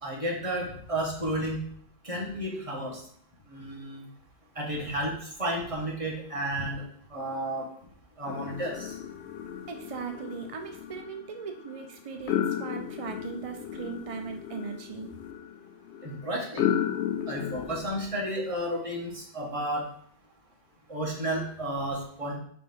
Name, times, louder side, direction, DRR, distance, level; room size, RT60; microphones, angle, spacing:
voice 1, 0.0-1.6 2.0-3.0 3.5-4.0 4.5-6.8 7.1-7.7 8.2-9.0 16.0-16.7 17.3-19.9 20.9-22.4, right 1 dB, 30° right, -2 dB, 1.5 m, -32 dB
sound 1, 8.3-17.9, left 9 dB, 65° left, 0.8 m, -34 dB
voice 2, 9.7-15.1, right 6 dB, 60° right, 5 dB, 0.3 m, -38 dB
5.1 x 3.4 x 5.4 m, 0.63 s
omnidirectional pair, 1.3 m